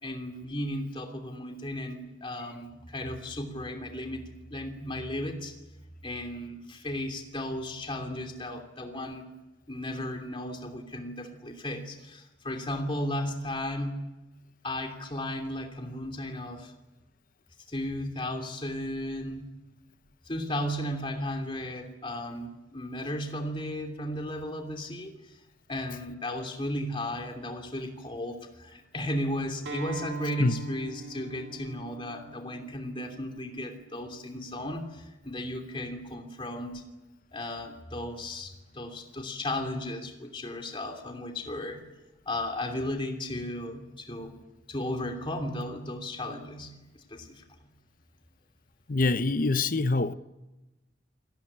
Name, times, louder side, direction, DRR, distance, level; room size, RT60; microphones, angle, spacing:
voice 1, 0.0-4.2 4.5-5.5 6.0-9.3 9.7-14.0 14.6-16.7 17.7-19.5 20.2-25.4 25.7-36.8 37.3-41.8 42.3-44.4 44.7-47.4, left 1 dB, 25° left, 2.9 m, -35 dB
Acoustic guitar, 29.7-34.9, right 4 dB, 65° right, 2.3 m, -44 dB
voice 2, 48.9-50.1, left 3 dB, 45° left, 0.8 m, -25 dB
29.0 x 19.0 x 8.8 m
head